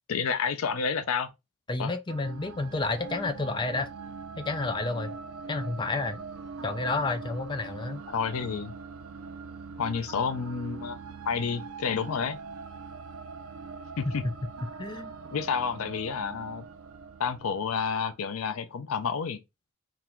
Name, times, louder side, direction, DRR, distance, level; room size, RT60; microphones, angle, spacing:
voice 1, 0.1-1.3 1.8-1.9 7.9-8.7 9.8-11.0 11.3-12.4 14.0-14.2 15.3-16.6 17.2-19.4, left 6 dB, 80° left, 0.5 m, -30 dB
voice 2, 1.7-3.9 4.4-5.1 5.5-6.2 6.6-8.0 14.1-14.4 14.6-15.1, left 3 dB, 20° left, 0.4 m, -30 dB
Horror Ringing, 2.1-18.3, right 4 dB, 85° right, 0.5 m, -42 dB
3.8 x 2.5 x 4.4 m
head